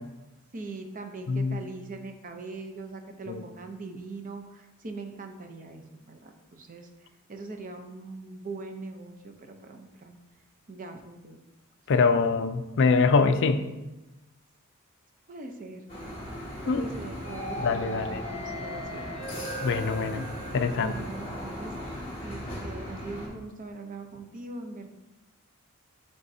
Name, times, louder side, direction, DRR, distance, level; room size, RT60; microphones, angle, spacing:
voice 1, 0.5-10.2 10.7-11.4 15.3-15.9 16.6-19.2 20.1-20.5 20.8-21.7 22.2-24.9, right 3 dB, 40° right, 5 dB, 0.6 m, -41 dB
voice 2, 1.3-1.6 3.3-3.4 11.9-13.7 16.7-16.8 17.6-18.2 19.6-20.2 20.5-21.0, left 4 dB, 55° left, 9 dB, 0.4 m, -24 dB
sound 1, 15.9-23.3, equal, 25° left, 1.8 m, -36 dB
10.5 x 3.6 x 2.7 m, 1.0 s
head